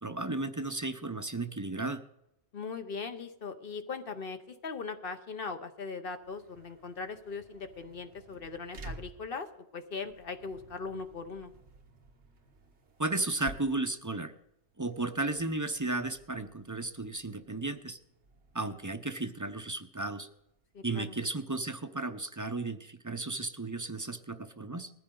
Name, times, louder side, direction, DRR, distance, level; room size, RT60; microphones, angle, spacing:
voice 1, 0.0-2.0 13.0-14.3 14.8-18.0 18.5-20.3 20.8-24.9, right 2 dB, 20° right, 9 dB, 0.6 m, -34 dB
voice 2, 2.5-9.5 9.7-11.5 20.7-21.0, left 4 dB, 60° left, 8 dB, 1.1 m, -39 dB
sound 1, 6.1-21.4, right 2 dB, 85° right, 1.6 m, -53 dB
20.0 x 14.0 x 3.8 m, 0.84 s
omnidirectional pair, 1.1 m